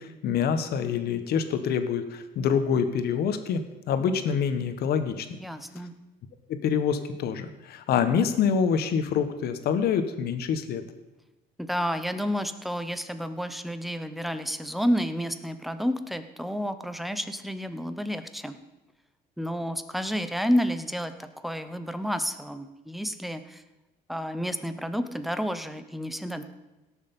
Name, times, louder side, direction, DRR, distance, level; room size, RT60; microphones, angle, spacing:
voice 1, 0.0-5.3 6.5-10.8, left 7 dB, 70° left, 9 dB, 1.2 m, -26 dB
voice 2, 5.4-5.9 11.6-18.6 19.4-23.6 24.1-26.4, equal, ahead, 10 dB, 0.9 m, -30 dB
17.0 x 6.7 x 5.4 m, 1.0 s
cardioid pair, 110°, 17 cm